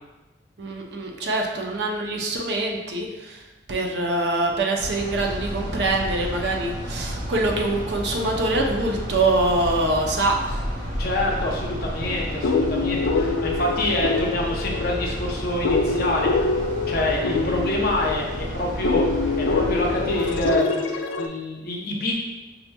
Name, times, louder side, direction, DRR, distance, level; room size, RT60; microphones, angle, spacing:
voice 1, 0.6-3.4 3.7-10.6 11.3-11.4, right 2 dB, 60° right, 1 dB, 0.5 m, -24 dB
sound 1, 4.8-20.5, equal, 45° right, 0.9 m, -31 dB
voice 2, 11.0-16.3 16.9-19.1 19.4-22.1, left 1 dB, 55° left, -1 dB, 0.7 m, -26 dB
sound 2, 12.0-21.3, left 4 dB, 90° left, 0.3 m, -25 dB
5.3 x 2.9 x 2.2 m, 1.1 s
head